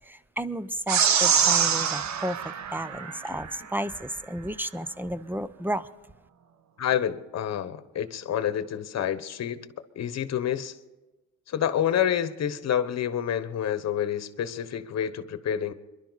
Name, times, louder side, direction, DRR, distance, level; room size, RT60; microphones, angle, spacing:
voice 1, 0.1-5.9, equal, 5° right, 0.7 m, -33 dB
sound 1, 0.9-3.5, right 7 dB, 65° right, 1.2 m, -24 dB
voice 2, 6.8-9.7 9.9-10.8 11.5-15.7, left 9 dB, 60° left, 1.2 m, -28 dB
25.5 x 11.5 x 4.1 m
cardioid pair, 90°, 30 cm